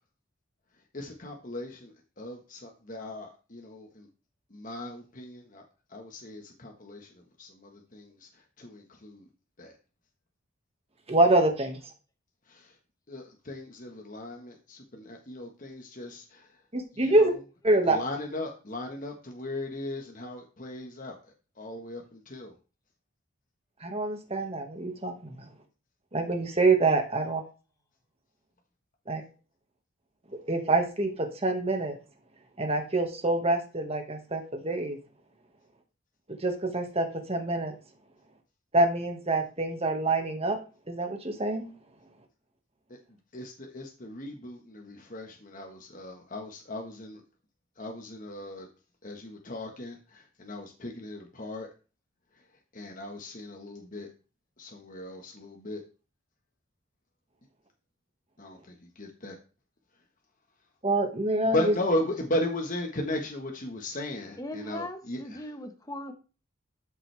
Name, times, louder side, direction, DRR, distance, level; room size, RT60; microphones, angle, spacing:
voice 1, 0.9-1.9 2.2-4.1 4.5-5.6 5.9-7.1 7.4-8.1 8.6-9.2 9.6-9.7 12.5-12.7 13.1-16.4 16.9-17.4 17.9-21.2 21.6-22.5 43.3-47.2 47.8-48.7 49.0-51.7 52.7-54.1 54.6-55.8 58.4-58.6 59.0-59.4 61.5-65.4, left 1 dB, 40° left, 1.4 m, -36 dB
voice 2, 11.1-11.8 16.7-17.3 17.6-18.0 23.8-25.4 26.1-27.4 29.1-29.2 30.5-32.0 32.6-35.0 36.4-37.7 38.7-40.6 40.9-41.7 60.8-61.7, right 2 dB, 30° right, 1.8 m, -26 dB
voice 3, 64.4-66.1, left 1 dB, 20° left, 1.2 m, -39 dB
12.5 x 7.4 x 3.4 m
head